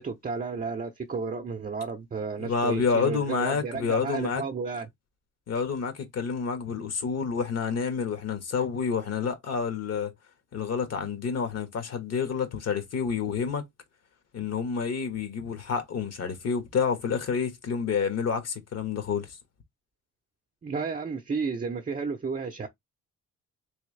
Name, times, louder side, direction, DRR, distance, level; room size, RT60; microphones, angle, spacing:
voice 1, 0.0-4.9 20.6-22.7, right 5 dB, 30° right, 0.7 m, -32 dB
voice 2, 2.4-4.4 5.5-10.1 10.5-13.6 14.3-19.4, left 6 dB, 60° left, 1.4 m, -29 dB
3.5 x 3.1 x 3.2 m
cardioid pair, 90°, 30 cm